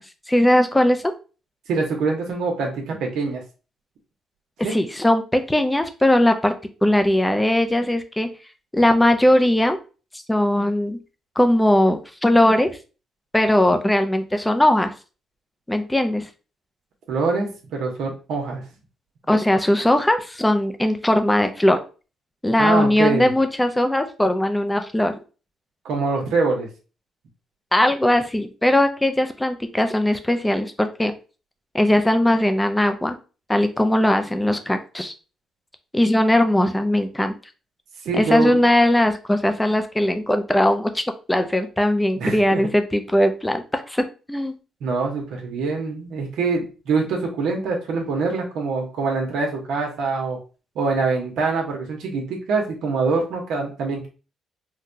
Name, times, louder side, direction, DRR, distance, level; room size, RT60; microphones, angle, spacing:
voice 1, 0.3-1.1 4.6-6.5 6.8-8.3 8.7-9.8 10.3-11.0 11.4-12.7 13.3-14.9 15.7-16.3 19.3-21.8 22.4-25.1 27.7-31.1 31.7-33.2 33.5-35.1 35.9-37.3 38.1-41.0 41.3-44.5, left 1 dB, 10° left, 7 dB, 0.5 m, -19 dB
voice 2, 1.7-3.4 4.6-4.7 17.1-18.6 22.6-23.3 25.8-26.7 38.0-38.6 42.2-42.6 44.8-50.4 50.7-54.1, right 4 dB, 80° right, 1 dB, 1.1 m, -24 dB
3.8 x 2.2 x 2.7 m, 0.34 s
cardioid pair, 90°, 0 cm